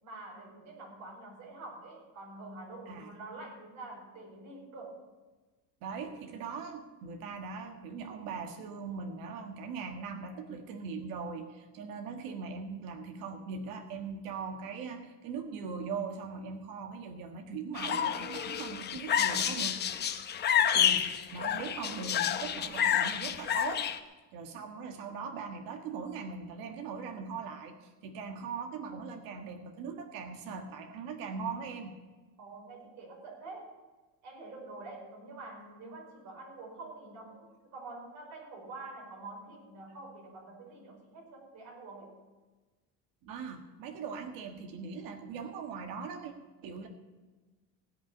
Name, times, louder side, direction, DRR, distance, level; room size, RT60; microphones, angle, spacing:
voice 1, 0.0-5.0 32.4-33.7 34.2-42.2, right 2 dB, 50° right, -2 dB, 5.4 m, -46 dB
voice 2, 5.8-19.7 20.7-23.9 24.3-32.0 43.2-46.3 46.6-46.9, right 5 dB, 70° right, 4 dB, 1.6 m, -40 dB
sound 1, 17.7-24.0, left 9 dB, 30° left, 0.8 m, -29 dB
17.0 x 5.8 x 9.7 m, 1.3 s
cardioid pair, 155°, 36 cm